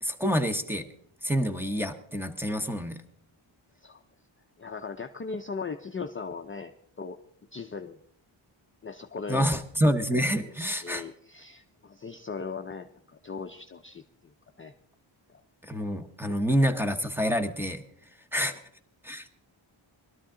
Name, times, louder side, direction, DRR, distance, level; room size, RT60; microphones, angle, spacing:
voice 1, 0.0-0.9 1.2-3.0 9.3-11.0 15.6-17.8 18.3-18.5 19.0-19.3, equal, 5° right, 8 dB, 0.8 m, -27 dB
voice 2, 4.6-6.7 7.0-7.2 7.5-8.0 8.8-9.5 10.1-12.9 13.2-14.0 14.6-14.7 15.3-15.4 18.5-18.6, left 5 dB, 25° left, 5 dB, 0.5 m, -38 dB
20.0 x 12.5 x 3.7 m, 0.64 s
wide cardioid pair, 160°, 49 cm